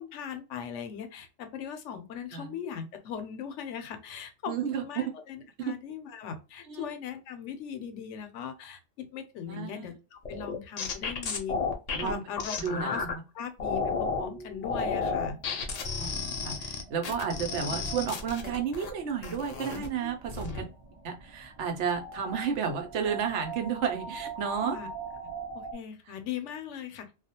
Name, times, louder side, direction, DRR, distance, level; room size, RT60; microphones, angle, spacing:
voice 1, 0.0-11.6 12.0-13.0 13.3-15.4 19.7-20.1 24.6-24.9 25.5-27.1, left 8 dB, 85° left, 7 dB, 0.9 m, -39 dB
voice 2, 4.5-5.0 5.6-5.7 6.7-6.8 9.5-9.8 11.9-12.2 12.6-13.2 16.0-16.1 16.4-20.6 21.0-24.8, right 7 dB, 75° right, 4 dB, 0.9 m, -32 dB
sound 1, 10.2-13.1 13.6-14.3 14.6-18.9 19.2-19.9 20.3-20.6, left 4 dB, 65° left, 0.4 m, -32 dB
sound 2, 13.6-25.7, right 4 dB, 35° right, 0.6 m, -44 dB
2.3 x 2.1 x 2.7 m, 0.30 s
omnidirectional pair, 1.2 m